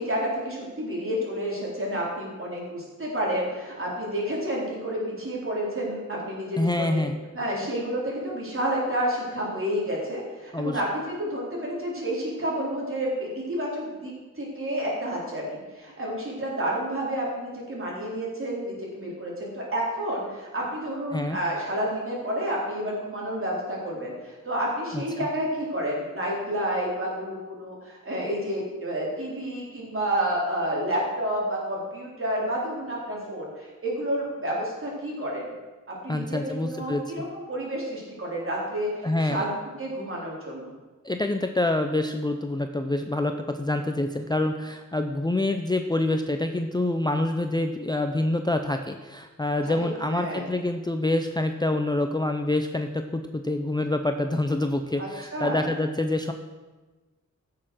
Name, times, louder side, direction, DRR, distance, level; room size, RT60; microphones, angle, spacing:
voice 1, 0.0-7.0 7.3-35.5 35.9-39.5 39.8-40.7 49.6-49.7 50.0-50.4 55.0-55.6, equal, 45° right, -4 dB, 4.0 m, -30 dB
voice 2, 6.6-7.2 10.5-10.8 21.1-21.4 24.9-25.3 36.1-37.2 39.0-39.4 41.0-56.3, left 2 dB, 15° left, 6 dB, 0.5 m, -26 dB
15.5 x 6.7 x 6.2 m, 1.2 s
wide cardioid pair, 145°, 31 cm